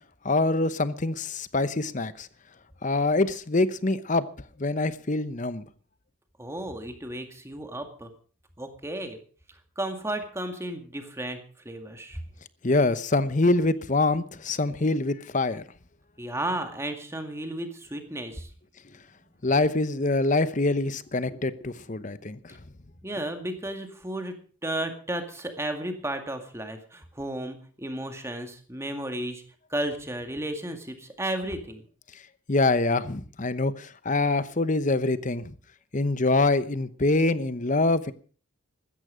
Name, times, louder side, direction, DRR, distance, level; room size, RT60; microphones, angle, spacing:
voice 1, 0.2-2.3 2.8-4.2 4.6-5.7 12.6-15.6 19.4-22.6 32.5-35.5 35.9-38.1, left 2 dB, 40° left, 0.9 m, -25 dB
voice 2, 6.4-8.1 8.6-9.2 9.8-11.4 11.7-12.2 16.2-18.5 23.0-29.4 29.7-31.8, right 1 dB, 15° right, 2.1 m, -33 dB
15.5 x 13.5 x 5.1 m
head